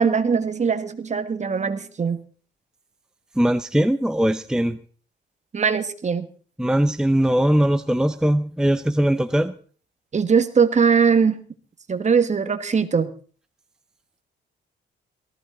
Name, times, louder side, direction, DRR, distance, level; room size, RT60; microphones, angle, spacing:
voice 1, 0.0-2.2 5.5-6.2 10.1-11.4 11.9-13.1, right 6 dB, 35° right, 10 dB, 1.8 m, -20 dB
voice 2, 3.4-4.8 6.6-9.5, right 1 dB, 5° right, 11 dB, 0.7 m, -20 dB
18.0 x 15.0 x 3.9 m, 0.42 s
cardioid pair, 90°, 20 cm